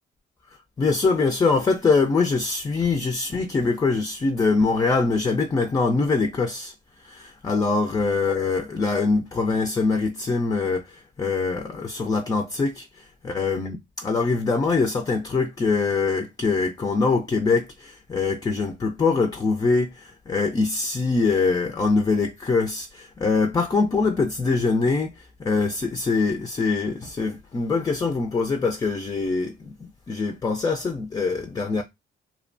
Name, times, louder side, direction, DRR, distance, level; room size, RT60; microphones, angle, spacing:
voice 1, 0.8-6.7 7.0-31.8, left 4 dB, 20° left, 0.3 m, -23 dB
2.7 x 2.1 x 2.5 m
cardioid pair, 90°, 20 cm